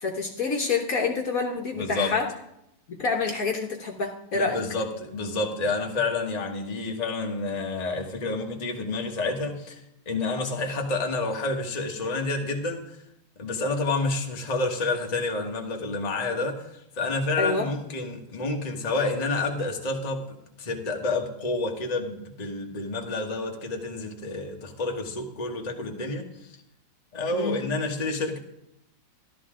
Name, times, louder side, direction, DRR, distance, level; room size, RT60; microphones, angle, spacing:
voice 1, 0.0-2.3 2.9-4.6 17.4-17.7 27.3-27.6, left 4 dB, 55° left, 2 dB, 1.4 m, -27 dB
voice 2, 1.7-2.1 4.3-9.8 10.1-12.9 13.4-26.3 27.1-28.4, left 3 dB, 25° left, 1 dB, 1.2 m, -29 dB
13.5 x 12.0 x 3.7 m, 0.83 s
omnidirectional pair, 2.0 m